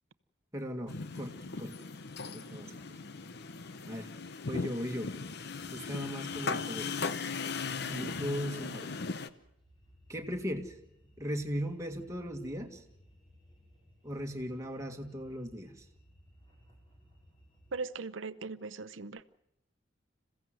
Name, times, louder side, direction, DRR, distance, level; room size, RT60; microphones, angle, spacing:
voice 1, 0.5-1.8 2.2-2.8 3.9-4.1 4.5-5.1 5.7-7.0 7.8-9.0 10.1-10.8 11.2-12.8 14.0-15.9, equal, 15° right, 2 dB, 1.9 m, -38 dB
sound 1, 0.9-9.3, left 4 dB, 60° left, 0.9 m, -38 dB
sound 2, 9.4-17.8, equal, 25° left, 5.1 m, -61 dB
voice 2, 17.7-19.3, right 4 dB, 90° right, 16 dB, 0.8 m, -39 dB
27.0 x 16.0 x 7.8 m, 0.79 s
head